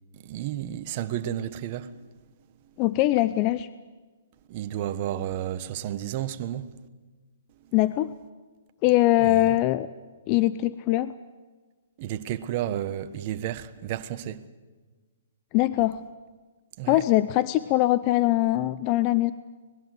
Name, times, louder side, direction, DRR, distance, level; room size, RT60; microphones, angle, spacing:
voice 1, 0.1-2.0 4.5-6.7 7.6-7.7 9.2-9.5 12.0-14.4 16.8-17.0, right 11 dB, 40° right, 1.3 m, -32 dB
voice 2, 2.8-3.7 7.7-8.1 8.8-9.9 10.3-11.1 15.5-16.0 16.9-19.3, left 16 dB, 30° left, 0.6 m, -22 dB
25.0 x 20.5 x 7.9 m
hypercardioid pair, 145°, 0 cm